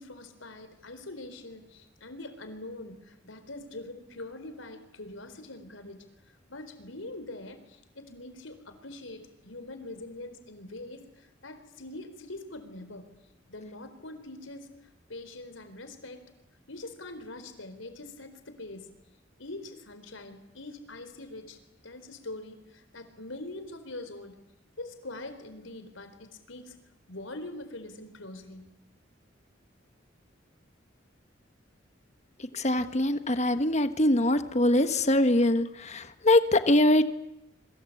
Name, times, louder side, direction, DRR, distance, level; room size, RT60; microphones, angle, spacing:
voice 1, 0.0-6.0 6.5-13.1 13.5-14.7 15.1-16.3 16.7-18.9 19.4-24.4 24.8-26.8 27.1-28.7, left 2 dB, 85° left, 10 dB, 4.2 m, -43 dB
voice 2, 32.5-37.0, left 1 dB, 35° left, 10 dB, 1.5 m, -23 dB
27.5 x 24.5 x 8.6 m, 0.87 s
head